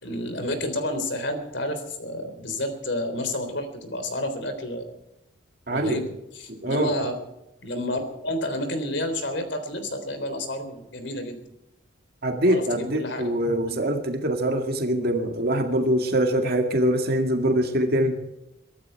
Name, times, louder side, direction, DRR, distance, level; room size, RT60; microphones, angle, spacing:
voice 1, 0.0-4.9 5.7-7.2 7.6-11.4 12.5-13.3 13.6-13.8, left 1 dB, 60° left, 8 dB, 3.6 m, -30 dB
voice 2, 5.7-6.0 6.5-6.9 12.2-18.2, right 1 dB, 50° right, 4 dB, 2.0 m, -23 dB
23.5 x 12.5 x 4.6 m, 0.88 s
head